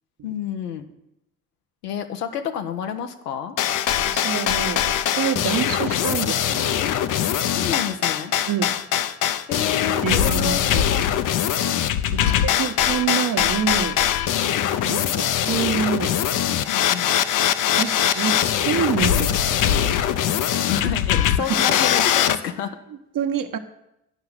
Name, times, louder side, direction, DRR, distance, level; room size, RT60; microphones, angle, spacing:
voice 1, 0.2-0.9 1.8-3.6 5.5-5.6 6.8-7.0 7.5-8.3 9.5-11.2 12.1-12.4 14.3-14.6 16.7-17.1 20.5-22.8, left 8 dB, 85° left, 6 dB, 0.9 m, -30 dB
sound 1, 3.6-22.4, left 10 dB, 45° left, 0.7 m, -22 dB
voice 2, 4.1-6.8 8.5-8.7 10.0-10.9 12.1-14.0 14.8-16.1 17.8-20.0 21.4-21.5 23.1-23.6, right 8 dB, 45° right, 7 dB, 1.1 m, -27 dB
10.5 x 5.7 x 7.9 m, 0.84 s
hypercardioid pair, 55°, 46 cm